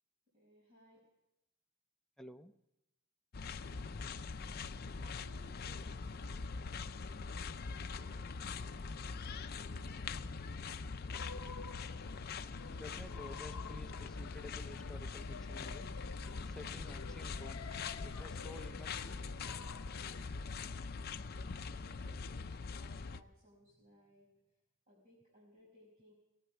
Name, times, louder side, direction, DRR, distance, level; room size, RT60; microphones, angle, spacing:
voice 1, 0.3-1.0 4.9-9.0 9.4-10.5 21.3-24.3 24.9-26.1, equal, 40° right, -6 dB, 5.4 m, -65 dB
voice 2, 2.2-2.5 12.7-16.0 16.4-17.6 18.0-19.2, left 2 dB, 5° left, 5 dB, 0.6 m, -52 dB
sound 1, 3.3-23.2, left 4 dB, 50° left, 0.5 m, -43 dB
sound 2, 11.1-20.2, left 5 dB, 90° left, 0.7 m, -52 dB
18.0 x 9.2 x 8.2 m, 0.92 s
head